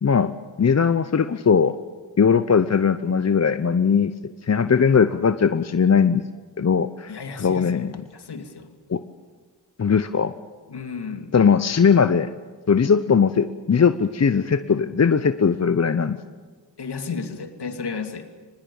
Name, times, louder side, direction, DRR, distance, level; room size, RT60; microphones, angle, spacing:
voice 1, 0.0-1.8 2.2-6.2 6.6-8.0 8.9-9.0 9.8-10.3 11.3-12.3 12.7-16.2, left 6 dB, 35° left, 12 dB, 0.9 m, -19 dB
voice 2, 7.1-7.9 8.1-8.7 10.7-11.4 16.8-18.3, left 5 dB, 60° left, 6 dB, 2.7 m, -33 dB
24.0 x 20.5 x 7.2 m, 1.5 s
supercardioid pair, 40°, 46 cm